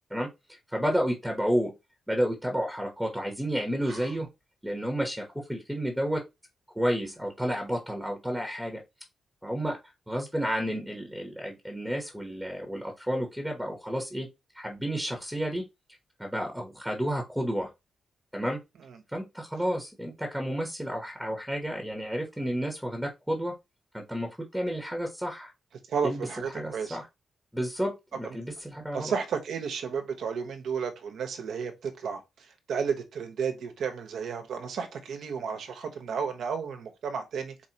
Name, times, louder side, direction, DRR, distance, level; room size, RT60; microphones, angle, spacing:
voice 1, 0.1-1.7 2.1-4.3 4.6-6.2 6.7-8.8 9.4-9.8 10.1-14.3 14.5-15.6 16.2-17.7 18.3-18.6 19.1-23.5 23.9-25.5 26.0-26.3 26.5-27.0 27.5-29.1, equal, ahead, 1.0 m, -31 dB
voice 2, 25.9-27.0 28.2-28.4 28.9-32.2 32.7-37.7, right 6 dB, 75° right, 1.1 m, -32 dB
4.6 x 3.2 x 2.9 m
cardioid pair, 120°, 0 cm